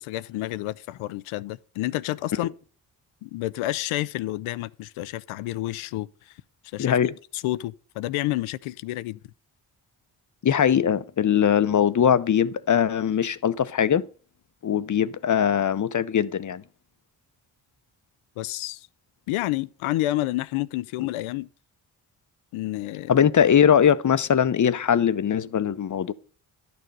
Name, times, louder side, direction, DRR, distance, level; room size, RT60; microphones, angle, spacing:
voice 1, 0.0-2.5 3.2-6.4 6.7-9.2 18.4-18.9 19.3-21.5 22.5-23.2, left 16 dB, 75° left, 0.6 m, -29 dB
voice 2, 6.8-7.1 10.4-14.0 14.6-16.6 23.1-26.1, left 8 dB, 40° left, 0.7 m, -21 dB
11.0 x 6.8 x 5.3 m
hypercardioid pair, 40°, 49 cm